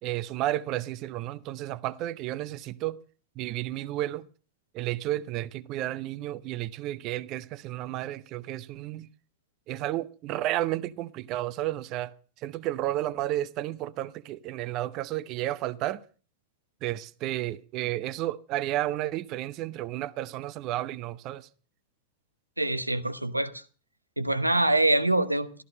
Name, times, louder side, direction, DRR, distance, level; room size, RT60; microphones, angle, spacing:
voice 1, 0.0-3.0 3.4-4.3 4.7-9.1 9.7-12.1 12.4-16.0 16.8-21.5, right 14 dB, 40° right, 0.8 m, -32 dB
voice 2, 22.6-23.6 24.2-25.6, right 1 dB, 85° right, 0.9 m, -25 dB
14.0 x 14.0 x 5.4 m
figure-of-eight pair, 90°, 0 cm